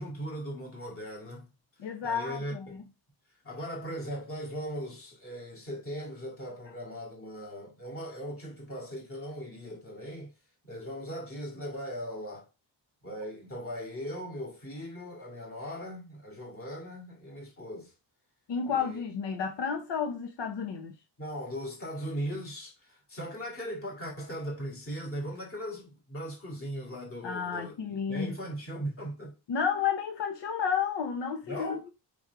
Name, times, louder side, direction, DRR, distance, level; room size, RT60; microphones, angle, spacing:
voice 1, 0.0-1.5 2.0-2.8 3.4-10.3 10.6-12.5 13.0-17.9 18.7-19.0 21.2-27.8 28.1-29.3 31.4-31.8, equal, 30° left, 2.8 m, -39 dB
voice 2, 1.8-2.8 18.5-20.9 27.2-28.3 29.5-31.9, left 7 dB, 75° left, 1.1 m, -31 dB
5.4 x 5.1 x 4.8 m
wide cardioid pair, 175°, 43 cm